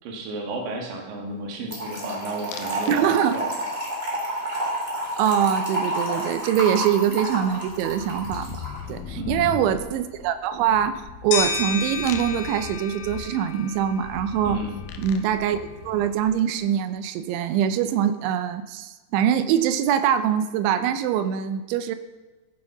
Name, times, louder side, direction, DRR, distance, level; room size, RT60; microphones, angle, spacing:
voice 1, 0.0-3.7 9.2-9.5 14.5-14.8, right 2 dB, 55° right, 2 dB, 3.4 m, -33 dB
Trickle dribble / Fill (with liquid), 1.7-8.8, right 1 dB, 15° right, 3.0 m, -29 dB
sound 1, 2.5-3.0 3.3-3.8 6.2-6.3 6.6-16.6, left 8 dB, 75° left, 2.2 m, -39 dB
voice 2, 2.9-3.4 5.2-8.6 8.9-14.6 15.0-22.0, right 9 dB, 80° right, 12 dB, 3.1 m, -23 dB
sound 2, 11.3-14.2, left 4 dB, 90° left, 3.9 m, -30 dB
14.5 x 9.5 x 5.9 m, 1.2 s
omnidirectional pair, 5.4 m